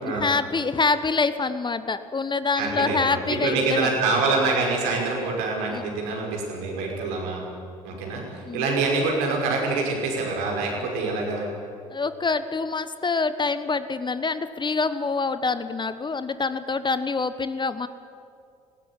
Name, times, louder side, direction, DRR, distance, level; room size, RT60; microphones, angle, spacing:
voice 1, 0.0-3.9 5.7-5.8 8.5-8.7 11.9-17.9, left 4 dB, 25° left, 12 dB, 1.1 m, -26 dB
voice 2, 2.6-7.4 7.8-11.5, right 3 dB, 70° right, 0 dB, 5.6 m, -25 dB
19.5 x 16.5 x 10.0 m, 2.4 s
hypercardioid pair, 60°, 18 cm